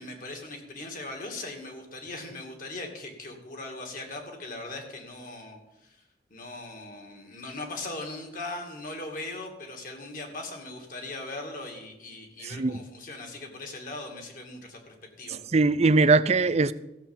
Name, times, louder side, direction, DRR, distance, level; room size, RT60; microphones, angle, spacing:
voice 1, 0.0-5.6 6.3-15.4, left 2 dB, 50° left, 2.5 m, -39 dB
voice 2, 12.4-12.8 15.3-16.7, right 3 dB, 40° right, 0.5 m, -21 dB
15.0 x 7.0 x 7.3 m
head